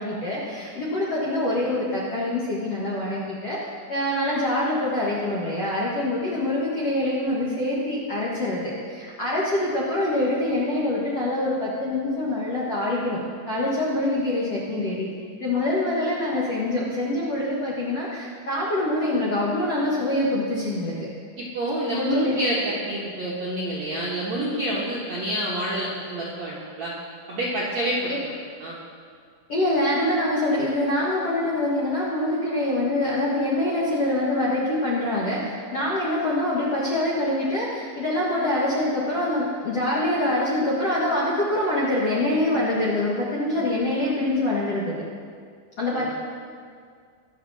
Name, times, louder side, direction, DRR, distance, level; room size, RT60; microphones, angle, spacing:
voice 1, 0.0-3.6 3.9-8.7 9.0-13.2 13.5-15.1 15.4-21.1 22.0-22.4 28.1-28.2 29.5-45.0 45.8-46.1, left 1 dB, 55° left, -6 dB, 1.7 m, -25 dB
voice 2, 21.4-26.9 27.3-28.3 28.6-28.8 45.9-46.1, right 1 dB, 65° right, -6 dB, 1.8 m, -28 dB
22.0 x 7.4 x 4.2 m, 2.1 s
omnidirectional pair, 5.2 m